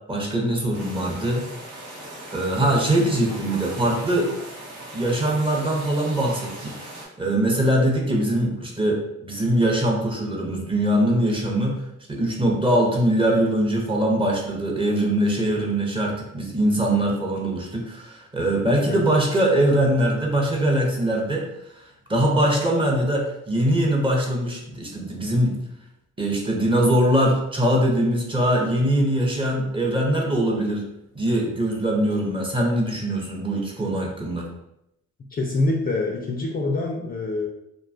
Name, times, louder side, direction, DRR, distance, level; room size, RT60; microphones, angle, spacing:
voice 1, 0.1-1.4 2.3-4.3 4.9-6.8 7.2-11.8 12.1-21.5 21.8-21.9 22.1-25.6 26.2-30.8 31.1-34.5, right 1 dB, 15° right, -1 dB, 0.6 m, -22 dB
sound 1, 0.7-7.0, right 1 dB, 85° right, 1.0 m, -39 dB
voice 2, 35.3-37.5, left 2 dB, 30° left, 0 dB, 0.4 m, -25 dB
2.6 x 2.2 x 2.5 m, 0.81 s
cardioid pair, 90°, 30 cm